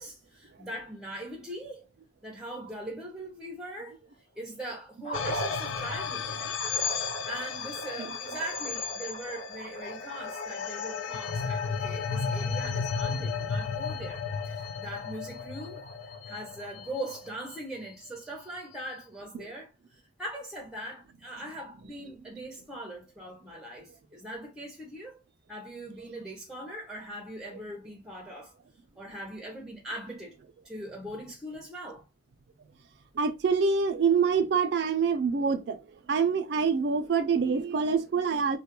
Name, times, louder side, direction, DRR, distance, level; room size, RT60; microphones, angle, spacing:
voice 1, 0.0-1.9 2.2-4.0 4.4-6.6 6.9-15.8 16.2-25.2 25.5-28.5 29.0-30.4 30.6-32.1, right 1 dB, 5° right, 0.5 m, -41 dB
sound 1, 5.0-17.3, right 2 dB, 35° left, 0.7 m, -42 dB
sound 2, 5.1-17.6, left 6 dB, 85° left, 0.3 m, -34 dB
voice 2, 33.1-35.8 36.1-38.6, right 5 dB, 60° right, 0.4 m, -26 dB
2.3 x 2.1 x 2.9 m
head